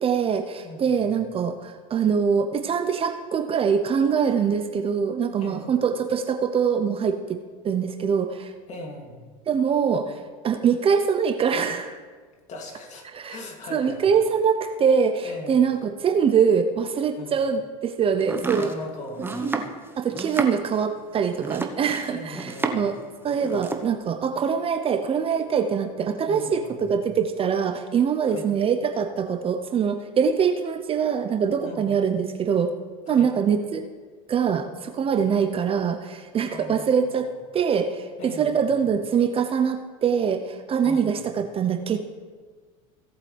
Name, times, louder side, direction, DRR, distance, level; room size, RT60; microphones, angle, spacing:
voice 1, 0.0-7.4 7.6-8.5 9.5-12.0 13.1-13.4 13.7-18.7 19.4-19.6 20.0-22.9 23.2-32.7 33.1-33.8 34.3-42.0, right 6 dB, 30° right, 7 dB, 0.8 m, -23 dB
voice 2, 0.6-1.1 5.3-5.7 8.7-9.3 12.5-14.0 15.2-15.6 17.2-17.3 18.5-19.4 22.1-22.8 26.3-26.9 28.2-28.5 31.6-32.0 33.1-33.3 36.4-37.3 38.2-38.8 40.8-41.3, left 1 dB, 40° left, 1 dB, 2.8 m, -40 dB
Domestic sounds home sounds, 18.2-23.0 23.3-23.9, right 3 dB, 10° right, 1.1 m, -31 dB
17.0 x 8.0 x 3.4 m, 1.5 s
hypercardioid pair, 90°, 18 cm